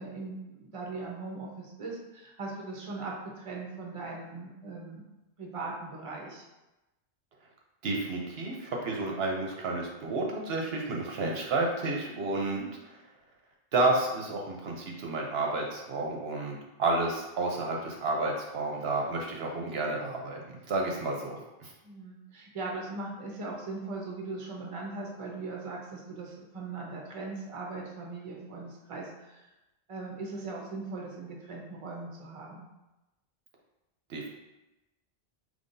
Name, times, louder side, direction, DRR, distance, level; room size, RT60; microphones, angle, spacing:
voice 1, 0.0-5.0 5.4-6.4 12.1-12.3 12.5-12.7 21.8-29.5 29.9-32.7, right 3 dB, 35° right, -2 dB, 0.8 m, -39 dB
voice 2, 7.8-12.6 13.7-21.7 34.1-34.3, right 2 dB, 70° right, 0 dB, 0.9 m, -31 dB
5.4 x 3.2 x 2.6 m, 1.0 s
omnidirectional pair, 1.1 m